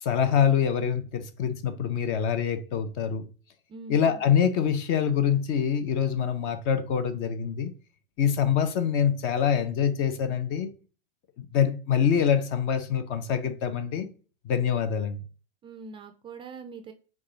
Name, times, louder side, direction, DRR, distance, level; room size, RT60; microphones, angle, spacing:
voice 1, 0.0-3.3 3.9-7.7 8.2-10.7 11.4-14.1 14.4-15.2, left 8 dB, 45° left, 0.7 m, -25 dB
voice 2, 3.7-4.2 15.6-16.9, right 4 dB, 20° right, 0.3 m, -43 dB
4.8 x 2.4 x 3.9 m
hypercardioid pair, 120°, 29 cm